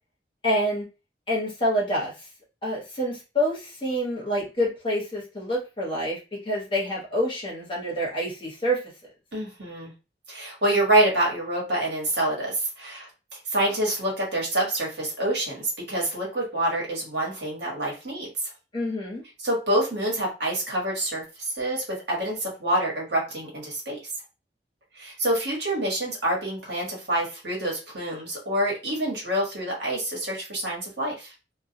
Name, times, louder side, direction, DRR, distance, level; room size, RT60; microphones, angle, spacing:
voice 1, 0.4-0.9 1.3-2.3 2.6-8.8 18.7-19.2, equal, 25° left, -5 dB, 1.0 m, -27 dB
voice 2, 9.3-9.9 10.3-18.5 19.4-24.0 25.0-31.3, right 1 dB, 65° right, -3 dB, 1.2 m, -27 dB
2.3 x 2.3 x 2.7 m, 0.30 s
head